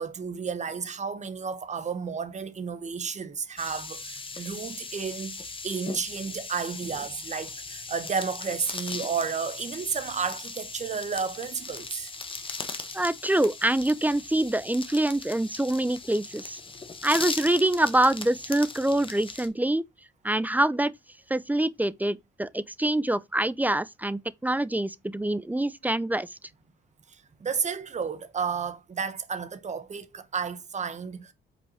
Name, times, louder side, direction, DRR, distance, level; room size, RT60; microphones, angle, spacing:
voice 1, 0.0-12.1 27.4-31.3, right 6 dB, 35° right, 1.0 m, -32 dB
sound 1, 3.6-19.5, left 4 dB, 25° left, 1.3 m, -39 dB
voice 2, 12.9-16.6 17.0-19.8 20.2-20.9 21.3-26.3, right 1 dB, 10° right, 0.4 m, -25 dB
5.5 x 4.5 x 4.1 m
cardioid pair, 90°, 20 cm